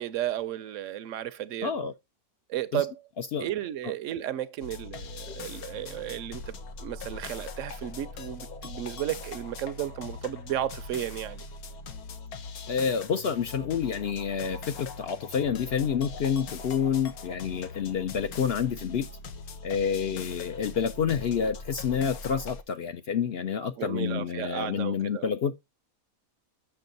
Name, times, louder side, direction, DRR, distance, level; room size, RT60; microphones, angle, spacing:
voice 1, 0.0-1.7 2.5-3.0 3.4-11.4 23.8-25.3, right 12 dB, 70° right, 0.9 m, -33 dB
voice 2, 1.6-1.9 2.7-2.8 3.2-3.5 3.8-3.9 5.3-5.4 12.7-19.1 19.6-25.5, left 7 dB, 60° left, 0.7 m, -28 dB
sound 1, 4.6-22.6, left 3 dB, 90° left, 1.4 m, -41 dB
6.8 x 6.4 x 3.9 m
omnidirectional pair, 1.5 m